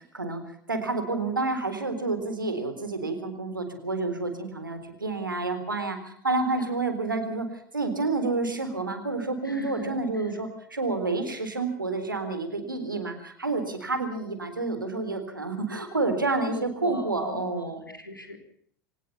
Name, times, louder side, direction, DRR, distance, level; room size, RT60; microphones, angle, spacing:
voice 1, 0.7-7.5 7.7-17.8, right 3 dB, 85° right, 8 dB, 3.9 m, -29 dB
voice 2, 9.4-10.3 16.5-18.4, left 2 dB, 90° left, 6 dB, 3.6 m, -40 dB
24.5 x 19.0 x 5.7 m, 0.63 s
figure-of-eight pair, 80°, 11 cm